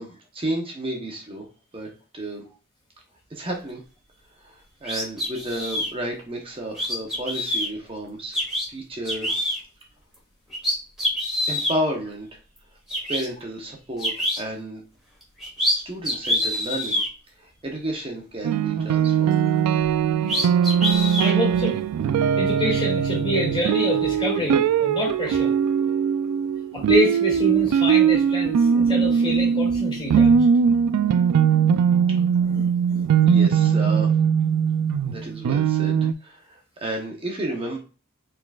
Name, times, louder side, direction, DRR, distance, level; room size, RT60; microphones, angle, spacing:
voice 1, 0.0-1.5 1.7-1.9 2.1-2.4 3.3-3.8 4.4-8.3 8.7-9.3 11.5-12.4 13.1-14.8 15.7-17.0 17.3-19.4 33.2-34.1 35.0-37.8, right 1 dB, 25° right, 1 dB, 0.8 m, -32 dB
sound 1, 4.8-5.9 6.8-7.7 8.3-8.7 9.1-9.6 10.1-10.2 10.5-11.8 12.6-12.7 12.9-13.3 14.0-14.4 15.2-15.8 16.0-17.1 19.8-19.9 20.3-21.3, left 1 dB, ahead, 1.8 m, -25 dB
sound 2, 18.4-36.1, right 7 dB, 90° right, 0.3 m, -20 dB
voice 2, 21.2-21.8 22.2-25.5 26.7-30.5 32.4-33.1, left 1 dB, 20° left, -2 dB, 2.1 m, -27 dB
4.7 x 3.9 x 2.3 m, 0.34 s
head